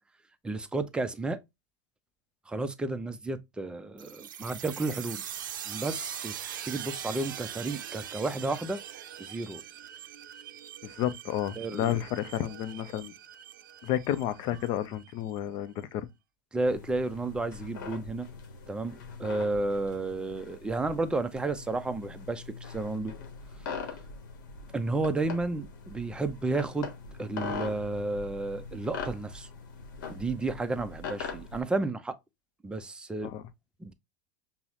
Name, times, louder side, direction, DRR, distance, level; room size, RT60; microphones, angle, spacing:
voice 1, 0.4-1.4 2.5-5.2 5.7-6.4 6.6-8.8 9.2-9.6 11.6-11.9 16.5-18.3 18.7-23.1 23.8-23.9 24.7-26.9 27.2-29.5 30.1-32.2 32.6-33.3 33.8-33.9, right 2 dB, 10° right, 0.4 m, -32 dB
sound 1, 4.0-15.4, right 10 dB, 85° right, 0.4 m, -42 dB
voice 2, 10.8-13.1 13.8-16.1 27.3-27.6 33.2-33.4, left 11 dB, 50° left, 0.5 m, -31 dB
sound 2, 16.6-31.6, left 5 dB, 75° left, 0.8 m, -42 dB
5.5 x 2.0 x 2.4 m
hypercardioid pair, 110°, 10 cm